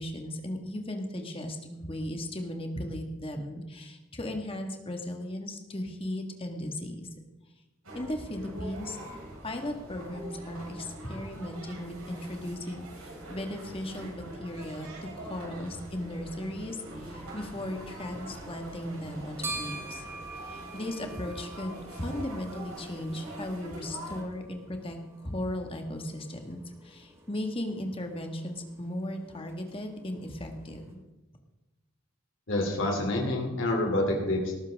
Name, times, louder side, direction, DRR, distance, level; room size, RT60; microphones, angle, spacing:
voice 1, 0.0-7.1 7.9-9.0 9.4-14.9 15.2-20.0 20.4-31.0, left 1 dB, 25° left, 4 dB, 1.7 m, -36 dB
sound 1, 7.8-24.2, right 1 dB, 85° right, 4.9 m, -44 dB
sound 2, 18.4-30.9, right 2 dB, 15° right, 2.3 m, -46 dB
voice 2, 32.5-34.5, left 1 dB, 60° left, 0 dB, 3.1 m, -27 dB
18.5 x 13.5 x 3.6 m, 1.1 s
head